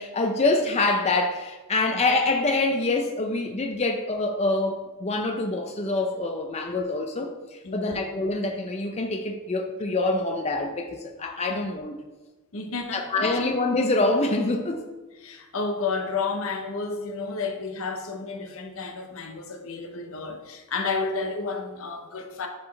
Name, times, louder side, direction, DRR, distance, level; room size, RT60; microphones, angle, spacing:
voice 1, 0.0-12.0 12.9-14.8, left 2 dB, 30° left, 0.5 m, -25 dB
voice 2, 7.6-8.0 11.5-11.6 12.5-13.4 15.2-22.5, left 4 dB, 65° left, 0.8 m, -31 dB
10.5 x 4.3 x 3.2 m
head